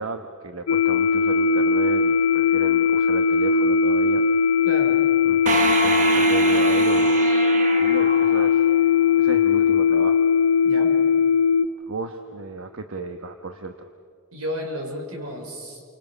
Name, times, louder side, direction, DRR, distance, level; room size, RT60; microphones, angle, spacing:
voice 1, 0.0-4.2 5.2-5.4 5.8-7.2 7.8-8.6 9.2-10.2 11.9-13.9, right 3 dB, 70° right, 6 dB, 1.1 m, -34 dB
sound 1, 0.7-11.7, left 5 dB, 85° left, 0.6 m, -19 dB
voice 2, 4.6-5.0 10.6-10.9 14.3-15.9, equal, 90° right, 2 dB, 5.0 m, -32 dB
sound 2, 5.5-9.1, right 3 dB, 35° right, 1.1 m, -26 dB
29.5 x 25.0 x 6.2 m, 2.2 s
head